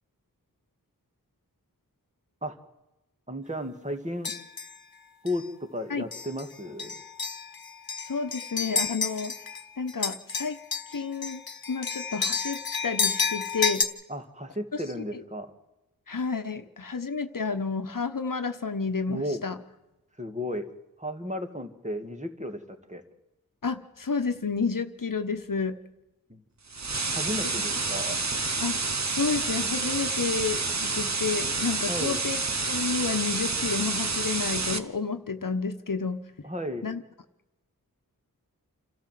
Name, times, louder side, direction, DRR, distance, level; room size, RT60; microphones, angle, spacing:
voice 1, 3.3-4.3 5.2-7.0 14.1-15.5 19.1-19.4 20.2-20.7 21.0-22.6 22.9-23.0 26.3-26.4 27.1-28.3 31.9-32.2 36.4-36.9, left 1 dB, 20° right, 5 dB, 2.3 m, -34 dB
sound 1, 4.2-4.8 5.3-5.4 6.1-6.5 6.8-9.6 9.9-13.8, left 5 dB, 85° left, 1.2 m, -30 dB
voice 2, 8.0-9.3 9.8-10.6 10.9-11.4 11.7-13.8 14.7-14.8 15.1-15.2 16.1-19.6 23.6-25.8 28.6-28.8 29.1-32.4 32.7-36.2 36.8-37.0, left 5 dB, 65° left, 9 dB, 1.2 m, -30 dB
sound 2, 26.7-34.8, right 3 dB, 50° right, 1.2 m, -29 dB
27.5 x 13.0 x 7.7 m, 0.99 s
wide cardioid pair, 45°, 36 cm